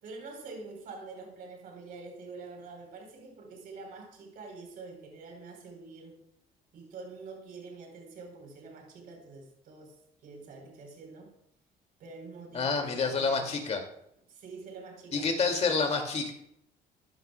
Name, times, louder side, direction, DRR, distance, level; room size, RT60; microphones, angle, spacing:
voice 1, 0.0-6.2 6.7-10.0 10.2-11.3 12.0-13.7 14.3-15.3, right 4 dB, 60° right, 3.8 m, -46 dB
voice 2, 12.5-13.8 15.1-16.3, left 4 dB, 40° left, 2.2 m, -28 dB
13.5 x 10.5 x 2.2 m
cardioid pair, 110°, 17 cm